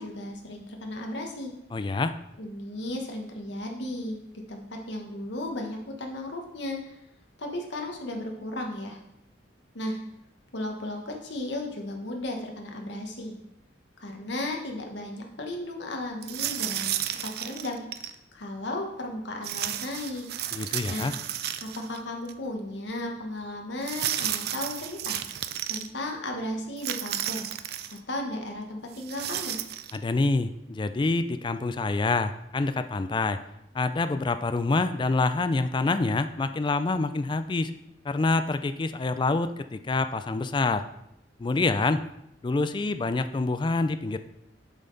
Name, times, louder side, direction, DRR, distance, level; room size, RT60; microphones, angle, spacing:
voice 1, 0.0-1.5 2.4-4.2 4.5-7.0 7.4-9.0 9.7-10.0 10.5-13.3 14.0-17.8 18.3-20.2 20.9-21.1 21.6-25.2 25.7-27.5 28.1-29.6, left 1 dB, 65° left, 2 dB, 1.2 m, -35 dB
voice 2, 1.7-2.1 20.5-21.1 29.9-33.4 33.7-37.7 38.1-40.8 41.4-42.0 42.4-44.2, left 3 dB, 25° left, 10 dB, 0.3 m, -26 dB
sound 1, 16.2-18.1 19.4-22.0 22.3-22.4 23.8-25.9 26.8-28.0 28.9-30.0, right 11 dB, 55° right, 0.4 m, -32 dB
7.1 x 5.6 x 4.0 m, 0.81 s
head